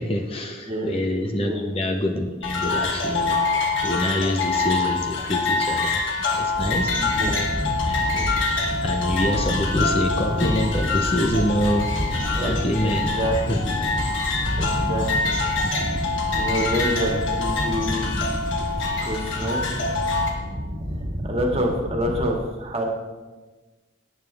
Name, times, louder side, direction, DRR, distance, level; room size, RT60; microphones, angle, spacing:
voice 1, 0.0-6.0 6.3-7.3 7.8-8.0 8.8-11.9 12.4-13.6 15.6-15.7, left 1 dB, 30° left, 3 dB, 0.8 m, -26 dB
voice 2, 0.7-1.0 1.3-1.7 7.0-7.5 8.1-8.3 12.4-12.5 12.8-13.8 14.6-15.4 16.4-18.1 18.8-19.6 21.2-22.9, equal, 30° right, 1 dB, 1.9 m, -27 dB
sound 1, 2.4-20.3, left 3 dB, 70° left, 1.8 m, -26 dB
sound 2, 6.5-22.3, equal, 50° right, 1.7 m, -29 dB
18.0 x 8.9 x 3.5 m, 1.3 s
head